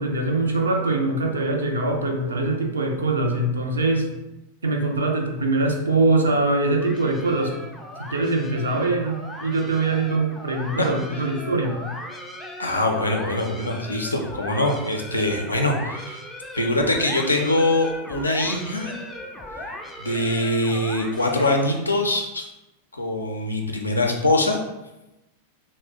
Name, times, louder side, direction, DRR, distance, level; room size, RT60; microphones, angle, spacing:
voice 1, 0.0-4.2 4.6-7.5 8.0-11.8, right 2 dB, 70° right, 3 dB, 0.4 m, -23 dB
sound 1, 6.8-21.9, left 1 dB, 5° left, 0.3 m, -38 dB
voice 2, 12.6-16.2 16.5-18.9 20.0-22.5 22.9-24.6, left 2 dB, 80° left, 2 dB, 0.4 m, -23 dB
2.4 x 2.1 x 3.5 m, 0.97 s
figure-of-eight pair, 90°, 0 cm